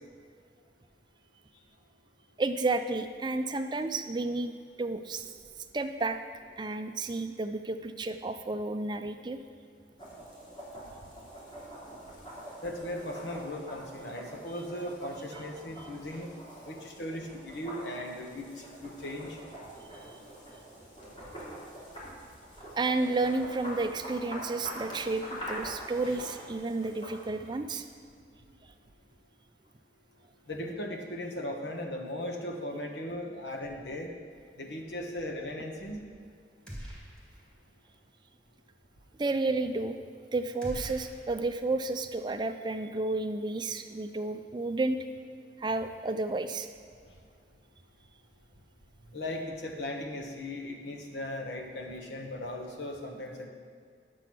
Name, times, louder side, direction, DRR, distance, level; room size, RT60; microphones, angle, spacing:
voice 1, 2.4-5.3 5.7-6.2 6.6-9.4 20.1-20.2 22.7-27.9 39.2-40.0 40.3-45.0 45.6-46.7, right 3 dB, 25° right, 8 dB, 0.4 m, -31 dB
sound 1, 10.0-27.6, equal, 30° left, 2.8 m, -45 dB
voice 2, 12.6-16.3 16.6-19.4 30.5-34.1 34.6-36.0 49.1-53.5, left 1 dB, 75° left, 2 dB, 1.3 m, -38 dB
sound 2, 36.7-37.5 37.8-37.9 40.6-41.9, equal, 5° left, 1.9 m, -43 dB
9.9 x 6.9 x 6.0 m, 2.2 s
head